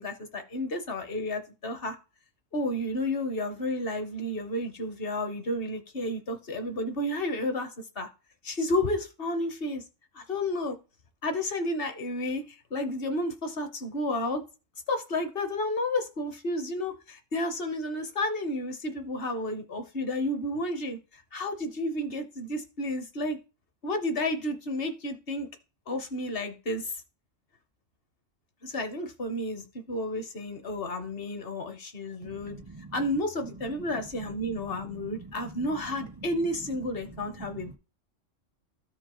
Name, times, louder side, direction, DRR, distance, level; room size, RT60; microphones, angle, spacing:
voice 1, 0.0-2.0 2.5-7.7 8.0-8.1 8.4-9.8 10.1-10.8 11.2-14.4 14.9-23.4 23.8-25.5 25.9-27.0 28.6-32.6 32.9-37.8, left 1 dB, 50° left, 1.0 m, -31 dB
voice 2, 32.2-33.0 34.4-35.7 36.0-36.1 37.4-37.8, right 3 dB, 35° right, 0.4 m, -46 dB
13.5 x 4.5 x 3.0 m
omnidirectional pair, 1.3 m